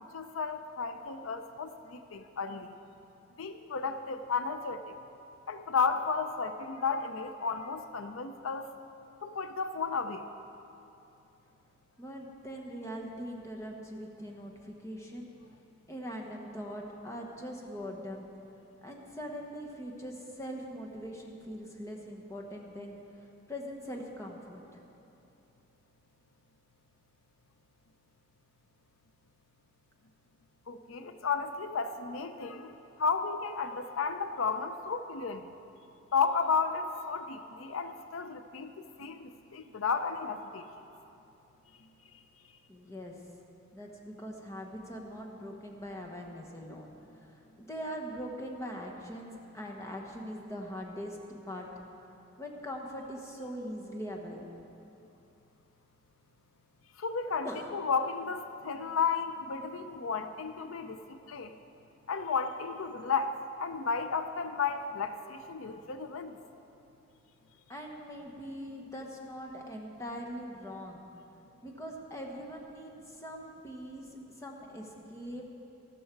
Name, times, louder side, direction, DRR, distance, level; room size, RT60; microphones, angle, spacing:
voice 1, 0.1-2.7 3.4-5.0 5.5-8.7 9.2-10.2 30.7-32.7 33.0-35.5 36.1-38.7 39.0-40.7 57.0-57.5 57.7-61.6 62.1-66.4, left 5 dB, 85° left, 9 dB, 0.6 m, -33 dB
voice 2, 12.0-15.3 15.9-18.3 18.8-24.8 42.7-43.2 43.7-51.2 51.5-51.7 52.4-54.5 57.4-57.7 67.7-71.0 71.6-75.5, equal, 15° left, 0 dB, 1.1 m, -42 dB
13.0 x 13.0 x 4.6 m, 2.9 s
head